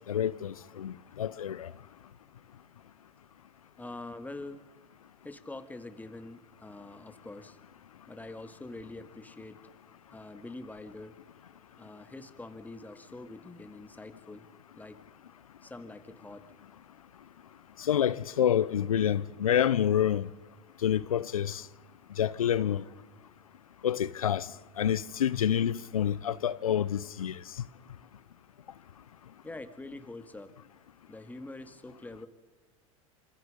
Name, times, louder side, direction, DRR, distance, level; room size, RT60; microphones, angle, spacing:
voice 1, 0.1-1.7 17.8-20.3 20.8-21.6 22.2-22.8 23.8-24.5 24.8-27.4, left 9 dB, 90° left, 0.7 m, -28 dB
voice 2, 3.8-4.6 5.2-7.6 8.1-9.6 10.1-11.2 11.8-14.5 14.7-15.0 15.6-16.5 29.4-30.5 31.1-32.3, left 2 dB, 10° left, 2.5 m, -45 dB
28.0 x 26.0 x 5.3 m
hypercardioid pair, 85°, 18 cm